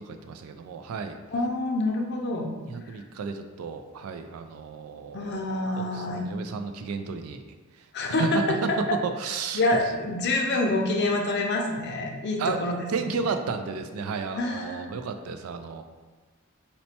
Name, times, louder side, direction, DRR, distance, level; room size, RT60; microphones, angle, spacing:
voice 1, 0.0-1.2 2.6-5.5 5.8-7.4 7.8-8.3 8.6-9.6 12.4-12.6 12.9-15.8, right 5 dB, 90° right, 7 dB, 0.3 m, -33 dB
voice 2, 1.3-2.5 5.1-6.3 7.9-8.6 9.5-12.8 14.4-14.9, left 2 dB, 50° left, 1 dB, 0.5 m, -26 dB
4.1 x 2.1 x 2.8 m, 1.3 s
head